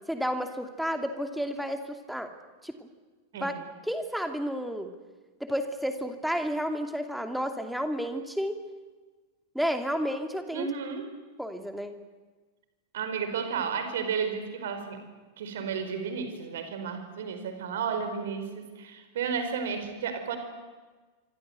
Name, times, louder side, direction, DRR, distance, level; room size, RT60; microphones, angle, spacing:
voice 1, 0.1-2.3 2.6-2.9 3.4-3.5 3.8-4.9 5.4-8.6 9.5-10.7 11.4-12.0, equal, ahead, 6 dB, 2.7 m, -31 dB
voice 2, 10.5-11.1 12.9-15.0 15.4-20.4, right 6 dB, 60° right, 8 dB, 4.8 m, -32 dB
26.0 x 25.5 x 8.1 m, 1.3 s
figure-of-eight pair, 90°, 0 cm